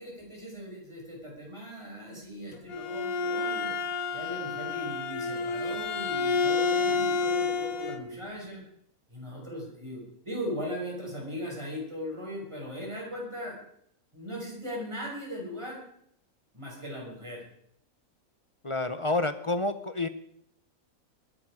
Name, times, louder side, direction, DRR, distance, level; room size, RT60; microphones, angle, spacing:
voice 1, 0.0-3.7 4.1-8.6 9.1-13.6 14.1-15.8 16.5-17.4, equal, 20° right, -2 dB, 5.6 m, -38 dB
Bowed string instrument, 2.5-8.0, left 4 dB, 85° left, 1.6 m, -29 dB
voice 2, 18.6-20.1, left 2 dB, 35° left, 11 dB, 0.5 m, -29 dB
20.5 x 11.0 x 4.8 m, 0.71 s
omnidirectional pair, 1.5 m